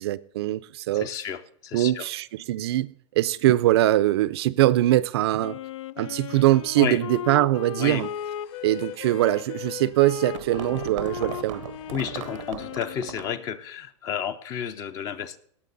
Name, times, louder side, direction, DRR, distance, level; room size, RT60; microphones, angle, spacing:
voice 1, 0.0-1.1 1.7-5.6 6.0-8.1 8.6-11.6, right 15 dB, 55° right, 0.5 m, -22 dB
voice 2, 0.9-2.1 6.8-7.0 7.8-8.1 11.9-15.4, left 8 dB, 20° left, 0.5 m, -31 dB
Wind instrument woodwind instrument, 5.4-13.5, left 10 dB, 75° left, 0.6 m, -37 dB
sound 1, 7.9-12.9, left 8 dB, 50° left, 3.1 m, -57 dB
sound 2, 9.9-13.4, right 11 dB, 85° right, 0.8 m, -38 dB
18.0 x 7.5 x 4.0 m
supercardioid pair, 175°, 16 cm